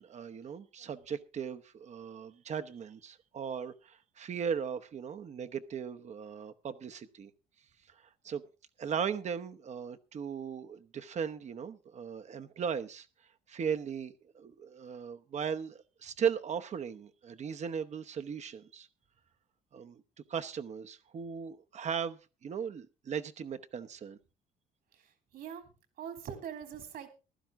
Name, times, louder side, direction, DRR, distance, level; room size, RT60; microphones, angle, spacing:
voice 1, 0.0-7.3 8.0-8.4 8.8-13.1 13.5-18.9 19.7-20.0 20.3-24.2, right 7 dB, 45° right, 0.9 m, -37 dB
voice 2, 24.9-25.6 26.0-27.2, right 8 dB, 65° right, 3.2 m, -43 dB
15.5 x 12.0 x 3.6 m
cardioid pair, 110°, 17 cm